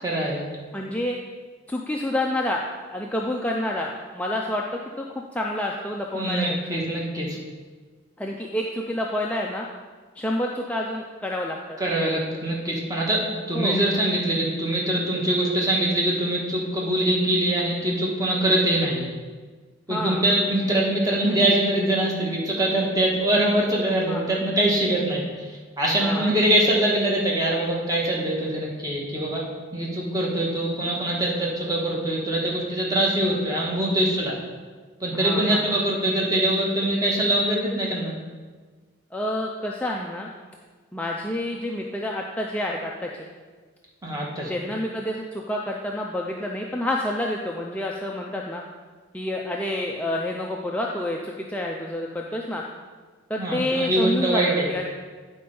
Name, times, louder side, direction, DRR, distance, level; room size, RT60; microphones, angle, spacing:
voice 1, 0.0-0.5 6.1-7.4 11.8-19.1 19.9-29.4 29.7-34.4 35.0-38.1 44.0-44.5 53.4-54.7, right 1 dB, 15° right, -3 dB, 1.3 m, -23 dB
voice 2, 0.7-1.2 1.7-2.6 2.9-4.8 5.3-6.6 8.2-9.7 10.2-11.6 13.5-13.8 19.9-20.2 24.1-24.2 26.0-26.3 35.1-35.8 39.1-40.3 40.9-43.3 44.5-48.6 49.1-52.6 53.3-54.4 54.7-54.8, left 1 dB, 5° left, -1 dB, 0.4 m, -28 dB
9.2 x 4.3 x 5.3 m, 1.4 s
head